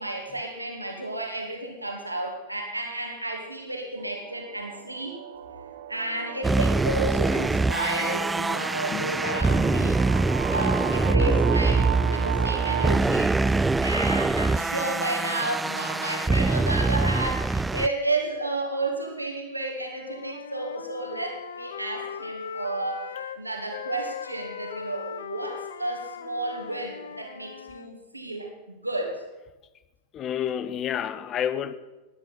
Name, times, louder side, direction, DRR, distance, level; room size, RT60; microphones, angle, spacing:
voice 1, 0.0-5.2 5.9-10.1 10.5-29.2, right 2 dB, 85° right, 1 dB, 2.0 m, -32 dB
sound 1, 4.0-13.0, right 11 dB, 55° right, 0.7 m, -36 dB
sound 2, 6.4-17.9, right 3 dB, 10° right, 0.3 m, -24 dB
Wind instrument woodwind instrument, 19.8-23.4 23.7-27.9, left 7 dB, 65° left, 0.6 m, -39 dB
voice 2, 30.1-31.7, left 9 dB, 30° left, 14 dB, 0.8 m, -29 dB
18.0 x 10.5 x 4.2 m, 1.1 s
figure-of-eight pair, 90°, 0 cm